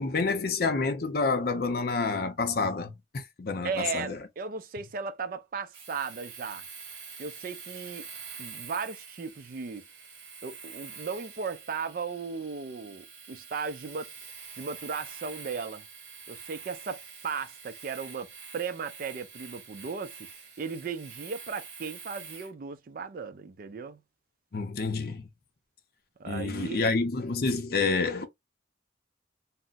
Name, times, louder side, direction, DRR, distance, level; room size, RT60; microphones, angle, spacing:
voice 1, 0.0-4.2 24.5-25.3 26.3-28.3, left 4 dB, 55° left, 0.5 m, -28 dB
voice 2, 3.6-6.6 7.2-8.1 8.4-9.8 10.4-14.1 14.6-15.8 16.3-18.3 18.5-20.3 20.6-24.0 26.2-26.9, right 5 dB, 50° right, 0.4 m, -36 dB
Domestic sounds home sounds, 5.7-22.5, right 6 dB, 65° right, 1.0 m, -46 dB
2.4 x 2.0 x 3.9 m
head